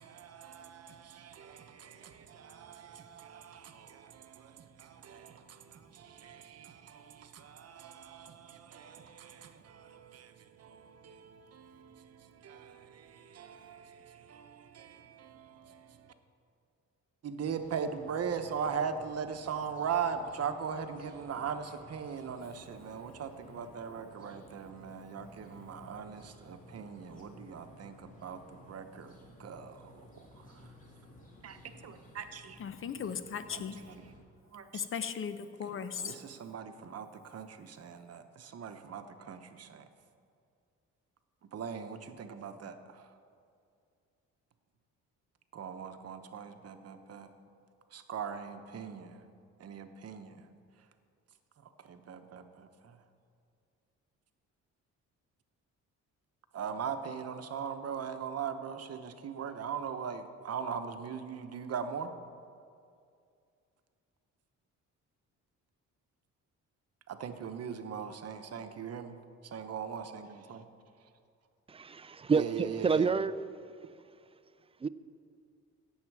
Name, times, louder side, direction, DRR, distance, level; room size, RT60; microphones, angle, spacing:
voice 1, 0.0-16.1 17.2-30.7 31.4-32.6 33.5-34.1 34.4-34.9 36.0-39.9 41.4-43.2 45.5-47.3 47.9-49.3 49.6-50.5 50.8-50.9 51.6-53.0 56.5-62.1 67.1-69.2 69.4-70.6 71.0-71.1 72.3-73.1, right 7 dB, 55° right, 0.9 m, -40 dB
sound 1, 17.4-34.2, left 1 dB, 25° left, 2.5 m, -56 dB
voice 2, 32.6-33.8 34.7-36.2, left 7 dB, 45° left, 0.8 m, -37 dB
voice 3, 71.7-73.3 74.8-74.9, right 5 dB, 20° right, 0.3 m, -29 dB
16.5 x 7.4 x 4.8 m
cardioid pair, 90°, 30 cm